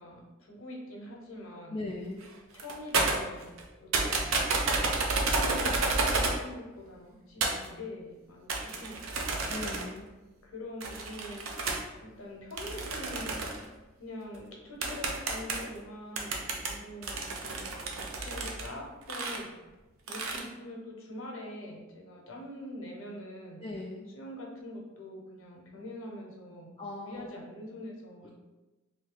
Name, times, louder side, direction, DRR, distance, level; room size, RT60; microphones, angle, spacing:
voice 1, 0.0-1.8 2.5-3.5 3.7-4.8 5.0-9.4 10.4-11.7 12.0-13.4 14.0-19.5 20.1-23.6 24.1-26.7 27.0-28.3, left 1 dB, 75° left, -1 dB, 0.8 m, -44 dB
voice 2, 1.7-2.2 9.5-10.1 23.6-24.1 26.8-27.4 28.2-28.3, left 2 dB, 25° left, -4 dB, 0.3 m, -39 dB
sound 1, 2.2-2.3 2.5-3.7 3.9-6.4 7.4-7.7 8.5-10.0 10.8-11.8 12.6-13.7 14.3-14.4 14.8-15.8 16.2-18.7 19.0-19.4 20.1-20.4, right 3 dB, 70° right, 0.5 m, -31 dB
2.7 x 2.6 x 3.8 m, 1.1 s
head